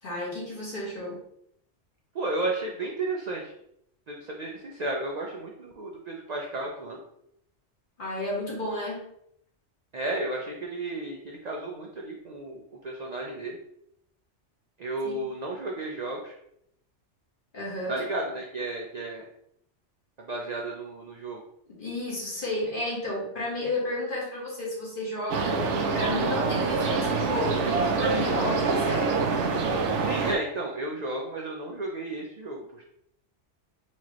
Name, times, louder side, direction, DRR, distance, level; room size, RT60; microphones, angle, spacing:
voice 1, 0.0-1.2 8.0-9.1 15.0-15.3 17.5-18.1 21.8-29.2, left 1 dB, 45° left, -5 dB, 1.4 m, -32 dB
voice 2, 2.1-3.5 4.1-7.0 9.9-13.6 14.8-16.3 17.9-19.2 20.2-21.4 30.0-32.8, right 2 dB, 55° right, 0 dB, 0.5 m, -33 dB
sound 1, 25.3-30.3, right 4 dB, 75° right, 0.9 m, -26 dB
4.4 x 3.0 x 2.9 m, 0.73 s
omnidirectional pair, 1.3 m